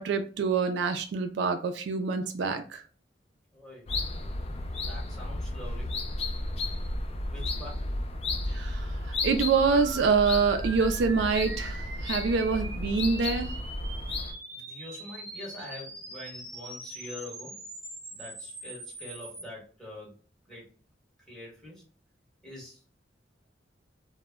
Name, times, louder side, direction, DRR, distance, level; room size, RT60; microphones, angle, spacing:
voice 1, 0.0-2.8 8.5-13.5, right 5 dB, 75° right, 7 dB, 0.3 m, -26 dB
voice 2, 3.5-3.9 4.8-5.9 7.3-7.8 14.5-17.6 18.1-20.1 20.4-20.7 21.3-21.8 22.4-22.8, left 1 dB, 5° left, -5 dB, 1.2 m, -44 dB
sound 1, 3.9-14.3, left 2 dB, 35° left, 0.3 m, -33 dB
sound 2, 9.5-19.4, right 1 dB, 20° right, 0.6 m, -43 dB
2.1 x 2.1 x 3.4 m, 0.39 s
head